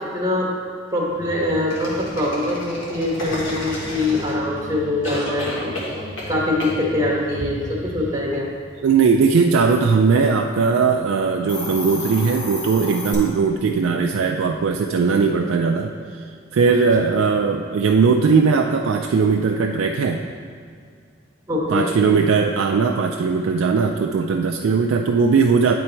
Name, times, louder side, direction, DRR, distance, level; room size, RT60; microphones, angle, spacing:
voice 1, 0.1-0.5 0.9-5.7 6.3-8.5 21.5-21.9, left 1 dB, 20° right, -4 dB, 1.0 m, -23 dB
sound 1, 1.1-2.4 3.0-8.2, equal, 40° right, 0.8 m, -38 dB
sound 2, 1.7-4.6 5.0-6.3 6.6-6.8, left 1 dB, 75° left, 1.5 m, -31 dB
voice 2, 8.8-16.2 16.5-20.2 21.7-25.7, right 5 dB, 85° right, 3 dB, 0.4 m, -19 dB
Hiss, 11.3-13.1, left 2 dB, 40° left, 1.8 m, -31 dB
8.8 x 3.9 x 4.4 m, 2.1 s
head